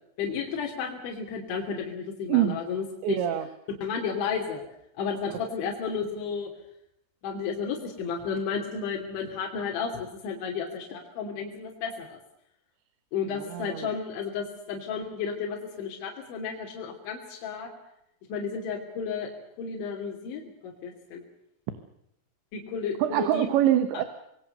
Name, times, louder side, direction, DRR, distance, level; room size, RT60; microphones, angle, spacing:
voice 1, 0.2-3.2 3.8-4.6 5.0-6.5 7.2-12.2 13.1-17.7 18.3-19.3 19.6-21.2 22.5-23.5, left 6 dB, 75° left, -1 dB, 5.3 m, -32 dB
voice 2, 2.3-2.6 3.0-3.5 13.3-13.9 23.0-24.0, right 12 dB, 75° right, 10 dB, 3.6 m, -25 dB
26.5 x 21.5 x 6.8 m, 0.80 s
omnidirectional pair, 5.4 m